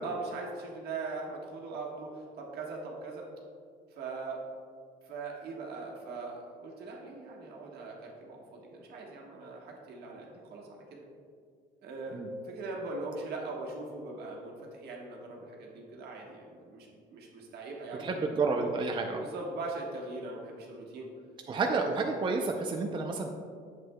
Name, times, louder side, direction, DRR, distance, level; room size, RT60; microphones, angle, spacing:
voice 1, 0.0-3.3 3.9-4.4 5.0-11.0 11.8-18.1 19.2-21.1, right 3 dB, 70° right, -1 dB, 1.4 m, -41 dB
voice 2, 18.0-19.2 21.5-23.3, right 4 dB, 30° right, 2 dB, 0.5 m, -30 dB
7.8 x 7.4 x 2.2 m, 2.1 s
cardioid pair, 110°, 17 cm